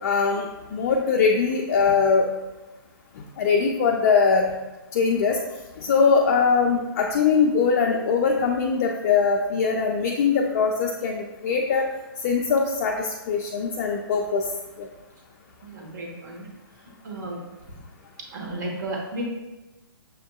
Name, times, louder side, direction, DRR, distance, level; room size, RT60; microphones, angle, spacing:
voice 1, 0.0-2.3 3.2-4.5 4.9-5.4 5.8-11.9 12.2-14.5 14.8-14.9, left 5 dB, 40° left, 1 dB, 0.4 m, -22 dB
voice 2, 15.6-16.4 17.0-17.4 18.3-19.2, right 1 dB, 50° right, -1 dB, 1.2 m, -33 dB
6.7 x 2.6 x 2.3 m, 1.1 s
hypercardioid pair, 145°, 13 cm